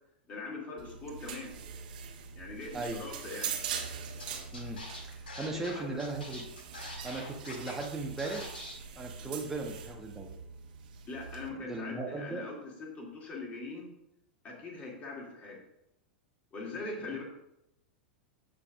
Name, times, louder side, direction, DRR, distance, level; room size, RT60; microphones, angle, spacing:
voice 1, 0.3-1.5 2.3-3.6 5.4-6.0 9.2-9.3 11.1-13.9 14.4-15.6 16.5-17.2, left 3 dB, 25° left, -2 dB, 2.6 m, -42 dB
sound 1, 0.8-11.5, right 7 dB, 60° right, 1.3 m, -43 dB
Scratching (performance technique), 4.2-4.3 4.5-7.9 8.2-8.7, left 2 dB, 70° left, 1.7 m, -44 dB
voice 2, 4.5-6.5 7.0-8.5 8.9-10.3 11.5-12.5 17.0-17.2, right 2 dB, 5° right, 0 dB, 1.2 m, -38 dB
15.5 x 5.2 x 2.5 m, 0.84 s
figure-of-eight pair, 90°, 5 cm